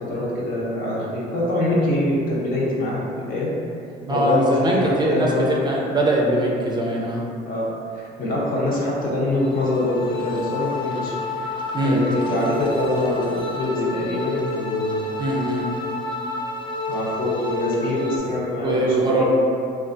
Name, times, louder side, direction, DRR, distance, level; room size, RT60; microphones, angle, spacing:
voice 1, 0.1-3.5 4.1-5.6 7.5-11.1 11.4-11.5 11.8-15.2 16.9-19.2, left 1 dB, 55° left, -6 dB, 0.8 m, -24 dB
voice 2, 4.1-7.2 11.7-12.0 15.2-15.8 18.5-19.2, right 1 dB, 25° right, -3 dB, 0.4 m, -21 dB
sound 1, 9.3-18.2, left 2 dB, 30° left, 0.4 m, -29 dB
3.2 x 2.3 x 2.6 m, 2.5 s
cardioid pair, 110°, 17 cm